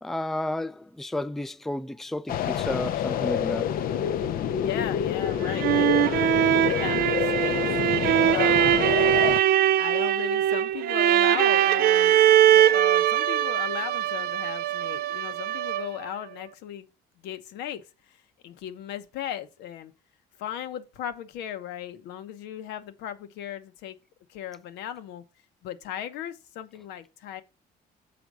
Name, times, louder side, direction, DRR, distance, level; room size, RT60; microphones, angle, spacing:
voice 1, 0.0-3.7, left 1 dB, ahead, 0.4 m, -32 dB
sound 1, 2.3-9.4, left 9 dB, 60° left, 0.5 m, -27 dB
voice 2, 4.6-7.6 8.3-9.1 9.8-12.2 12.5-16.9 17.2-18.2 18.4-19.9 20.4-24.0 24.3-25.2 25.6-27.4, left 10 dB, 85° left, 1.0 m, -36 dB
sound 2, 5.2-16.1, right 12 dB, 65° right, 0.4 m, -22 dB
6.9 x 5.1 x 4.7 m
cardioid pair, 110°, 17 cm